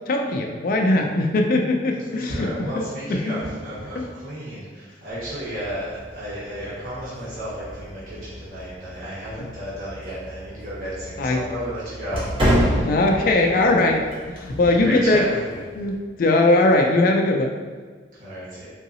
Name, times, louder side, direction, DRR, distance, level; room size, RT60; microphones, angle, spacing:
voice 1, 0.1-3.4 9.4-9.5 11.2-11.4 12.9-15.2 15.7-17.5, left 2 dB, 50° left, 2 dB, 0.3 m, -20 dB
voice 2, 1.9-12.9 13.1-13.7 14.6-15.6 18.1-18.7, equal, 50° right, -11 dB, 1.2 m, -33 dB
sound 1, 5.1-16.0, equal, 30° right, 0.8 m, -30 dB
3.8 x 2.7 x 2.6 m, 1.5 s
head